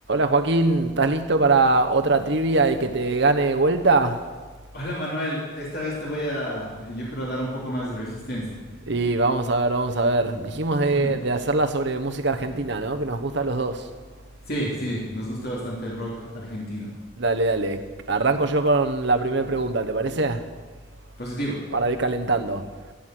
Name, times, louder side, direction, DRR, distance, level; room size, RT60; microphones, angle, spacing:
voice 1, 0.1-4.3 8.9-13.9 17.2-17.8 18.1-20.5 21.7-22.9, right 3 dB, 60° right, 1.0 m, -22 dB
voice 2, 4.7-8.6 10.9-11.1 14.4-16.9 21.2-21.6, equal, 50° left, 3.1 m, -30 dB
15.5 x 8.0 x 7.7 m
head